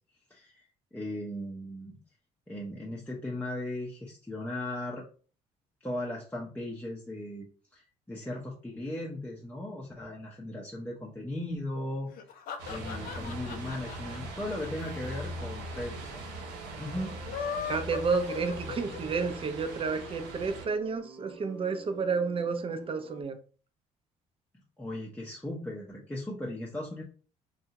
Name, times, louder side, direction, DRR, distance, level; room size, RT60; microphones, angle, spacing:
voice 1, 0.3-0.7 0.9-2.0 2.5-5.0 5.8-7.4 7.7-12.1 12.7-16.2 16.8-17.2 24.8-27.0, left 1 dB, 10° left, -4 dB, 0.7 m, -37 dB
sound 1, 12.1-15.5 15.7-15.8 16.0-16.1 17.1-19.2, left 7 dB, 60° left, 0.5 m, -38 dB
sound 2, 12.6-20.7, right 1 dB, 85° right, 0.8 m, -41 dB
sound 3, 16.9-23.2, right 3 dB, 60° right, 1.1 m, -50 dB
voice 2, 17.7-23.4, right 5 dB, 35° right, 7 dB, 0.6 m, -31 dB
2.6 x 2.3 x 2.8 m, 0.40 s
supercardioid pair, 65°, 17 cm